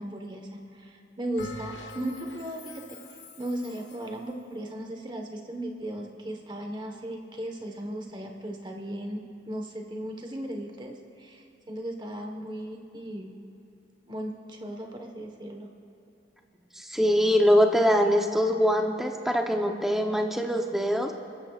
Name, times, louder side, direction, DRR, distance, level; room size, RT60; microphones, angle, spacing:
voice 1, 0.0-3.0 3.4-13.4 14.1-15.7, right 1 dB, 25° right, 3 dB, 1.3 m, -36 dB
Bell, 1.4-4.2, left 2 dB, 75° left, 1.4 m, -45 dB
voice 2, 16.8-21.1, equal, ahead, 3 dB, 0.8 m, -23 dB
27.0 x 13.5 x 2.4 m, 3.0 s
head